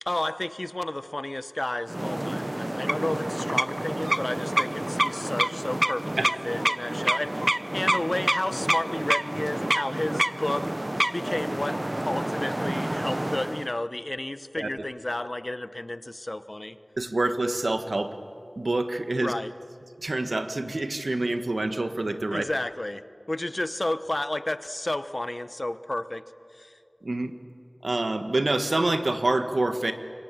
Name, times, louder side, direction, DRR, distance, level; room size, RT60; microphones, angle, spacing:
voice 1, 0.0-10.7 11.1-16.8 19.2-19.5 22.3-26.2 26.5-26.8, left 1 dB, 45° left, 13 dB, 1.0 m, -32 dB
sound 1, 1.9-13.7, right 1 dB, 30° right, 0.6 m, -28 dB
voice 2, 17.0-18.1 18.6-19.3 20.0-22.4 27.0-27.3 27.8-29.9, right 2 dB, 80° right, 8 dB, 1.5 m, -26 dB
26.5 x 23.5 x 9.1 m, 2.5 s
wide cardioid pair, 50°, 0 cm